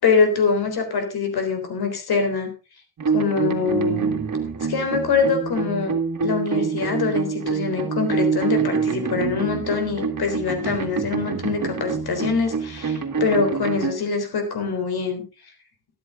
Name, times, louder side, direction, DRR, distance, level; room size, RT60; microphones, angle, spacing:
voice 1, 0.0-2.5 3.1-4.2 4.7-6.0 6.2-15.2, left 5 dB, 85° left, 6 dB, 3.8 m, -24 dB
sound 1, 3.0-13.9, right 5 dB, 55° right, 2.2 m, -26 dB
13.0 x 13.0 x 3.8 m, 0.31 s
wide cardioid pair, 105°, 37 cm